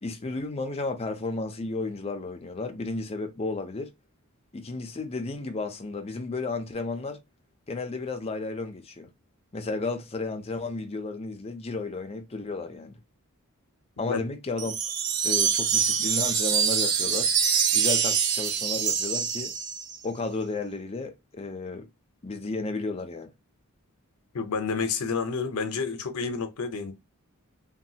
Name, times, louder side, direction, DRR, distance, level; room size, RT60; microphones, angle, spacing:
voice 1, 0.0-3.9 4.5-7.2 7.7-9.1 9.5-13.0 14.0-14.7 15.2-17.3 17.7-19.5 20.0-21.9 22.2-23.3, left 3 dB, 25° left, 0.5 m, -33 dB
sound 1, 14.6-20.0, right 7 dB, 85° right, 0.5 m, -25 dB
voice 2, 24.3-26.9, left 5 dB, 80° left, 0.6 m, -29 dB
3.1 x 2.2 x 2.7 m
head